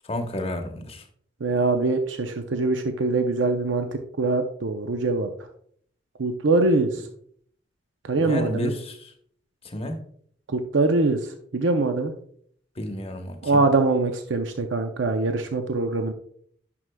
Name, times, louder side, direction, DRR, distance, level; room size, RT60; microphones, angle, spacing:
voice 1, 0.1-1.0 8.2-9.1 9.6-10.0 12.8-13.5, left 1 dB, 30° left, 5 dB, 0.9 m, -31 dB
voice 2, 1.4-3.9 4.2-5.3 6.2-7.0 8.1-8.7 10.5-11.2 11.5-12.1 13.4-16.1, right 3 dB, 75° right, 6 dB, 0.6 m, -23 dB
9.6 x 6.1 x 2.2 m, 0.62 s
head